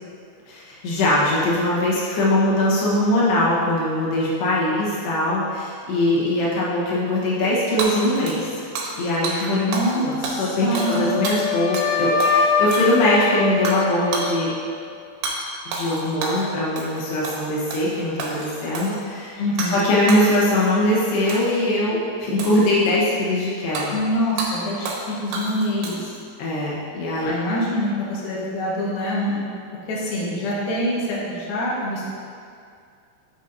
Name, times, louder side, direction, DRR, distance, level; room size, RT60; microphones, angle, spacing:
voice 1, 0.5-8.6 9.0-9.6 9.9-14.5 15.7-19.4 19.7-24.0 26.4-27.6, left 1 dB, 85° left, -6 dB, 3.3 m, -22 dB
Hammer / Shatter, 7.8-9.0 9.2-9.4 9.7-10.0 10.2-11.9 12.2-12.4 12.7-13.2 13.7-13.8 14.1-14.3 15.2-15.4 15.7-16.5 16.8-17.0 17.2-17.9 18.2-19.0 19.6-19.8 20.1-20.7 21.3-21.6 22.4-23.0 23.8-23.9 24.4-24.5 24.9-25.1 25.3-26.2, right 3 dB, 80° right, 3.0 m, -30 dB
voice 2, 9.4-11.1 19.4-19.8 23.9-26.1 27.2-29.4 29.9-32.0, equal, 70° left, -6 dB, 3.1 m, -25 dB
Wind instrument woodwind instrument, 10.7-14.8, left 5 dB, 55° left, 3.3 m, -23 dB
9.3 x 7.3 x 2.6 m, 2.3 s
omnidirectional pair, 4.6 m